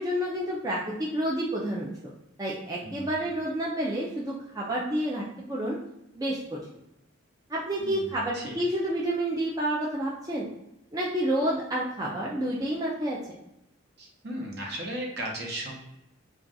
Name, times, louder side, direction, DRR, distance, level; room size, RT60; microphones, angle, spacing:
voice 1, 0.0-2.1 2.4-5.8 6.1-6.6 7.5-10.5 10.9-13.2, right 1 dB, 20° right, -5 dB, 0.3 m, -29 dB
voice 2, 2.8-3.3 7.8-8.5 14.0-15.8, right 1 dB, 55° right, -1 dB, 0.8 m, -36 dB
2.4 x 2.3 x 3.9 m, 0.88 s
head